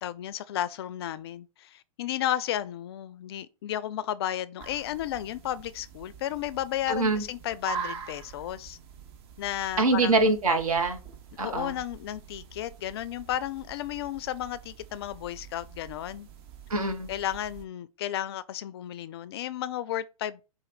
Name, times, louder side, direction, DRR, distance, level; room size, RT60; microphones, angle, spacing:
voice 1, 0.0-8.8 9.4-10.2 11.4-16.3 17.1-20.4, left 12 dB, 45° left, 0.4 m, -33 dB
sound 1, 4.6-17.6, right 6 dB, 45° right, 0.8 m, -44 dB
voice 2, 6.9-7.2 9.8-11.0 11.4-11.8 16.7-17.1, right 3 dB, 70° right, 1.2 m, -24 dB
4.9 x 2.5 x 4.3 m
figure-of-eight pair, 115°, 19 cm